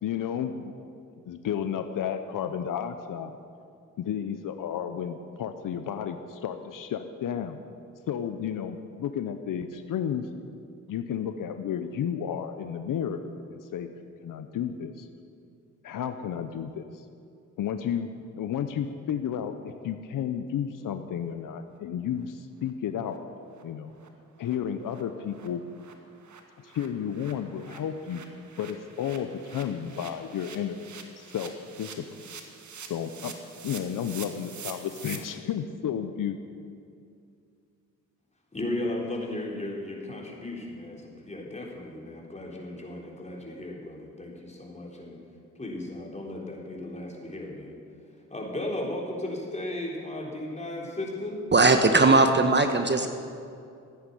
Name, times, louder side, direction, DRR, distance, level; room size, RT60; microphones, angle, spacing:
voice 1, 0.0-0.7 1.3-3.3 4.0-7.6 8.1-10.3 10.9-13.2 13.5-13.9 14.2-15.1 15.8-16.9 17.6-18.1 18.4-23.2 23.6-23.9 24.4-25.6 26.6-28.2 28.6-30.9 31.2-31.5 31.8-32.0 32.9-33.3 33.6-36.4, left 8 dB, 75° left, 9 dB, 0.8 m, -32 dB
sound 1, 22.2-22.3 22.6-22.7 23.1-23.2 23.5-23.6 24.0-24.1 24.4-24.6 24.9-25.0 25.3-35.2, right 6 dB, 60° right, 1.6 m, -46 dB
voice 2, 38.5-45.2 45.6-47.8 48.3-51.4, left 1 dB, 20° left, -2 dB, 3.9 m, -35 dB
voice 3, 51.5-53.1, right 3 dB, 35° right, 7 dB, 1.1 m, -19 dB
15.0 x 9.5 x 6.9 m, 2.4 s
cardioid pair, 55°, 33 cm